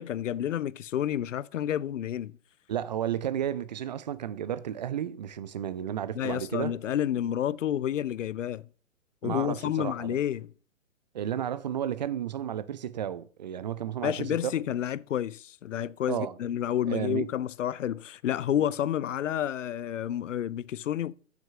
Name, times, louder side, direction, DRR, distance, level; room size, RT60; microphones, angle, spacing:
voice 1, 0.0-2.4 6.1-8.7 9.2-10.5 14.0-21.1, left 10 dB, 70° left, 0.5 m, -30 dB
voice 2, 2.7-6.7 9.2-10.2 11.1-14.5 16.1-16.4 16.9-17.3 18.6-18.7, right 10 dB, 35° right, 0.4 m, -32 dB
7.2 x 6.6 x 6.7 m
figure-of-eight pair, 125°, 40 cm